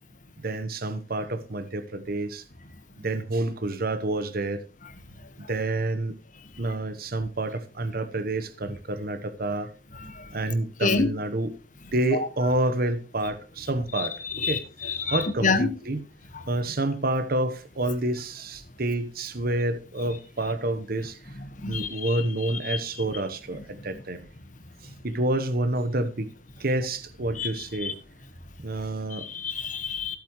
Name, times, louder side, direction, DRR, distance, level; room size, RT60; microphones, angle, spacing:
voice 1, 0.4-2.4 3.0-4.6 5.5-6.1 6.6-9.7 10.3-11.5 11.9-14.1 14.5-14.6 15.1-16.0 16.5-21.2 21.6-24.2 25.0-26.3 26.6-27.9 28.6-29.3, right 2 dB, 55° right, 1.1 m, -28 dB
voice 2, 14.4-15.7 21.6-22.1 22.7-22.8 27.4-27.5 27.8-27.9 29.2-30.2, left 4 dB, 45° left, 1.4 m, -27 dB
15.0 x 8.6 x 3.1 m
head